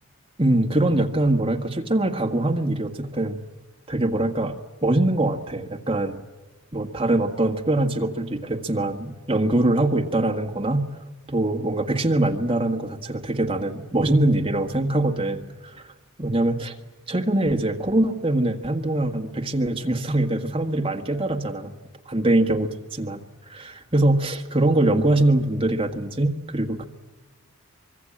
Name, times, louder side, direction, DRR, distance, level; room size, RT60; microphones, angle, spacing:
voice 1, 0.4-3.4 3.9-4.6 4.8-6.2 6.7-10.9 11.3-15.8 16.2-16.7 17.1-21.7 22.1-23.2 23.5-26.9, right 1 dB, 25° right, 4 dB, 1.6 m, -23 dB
24.5 x 23.0 x 8.7 m, 1.2 s
head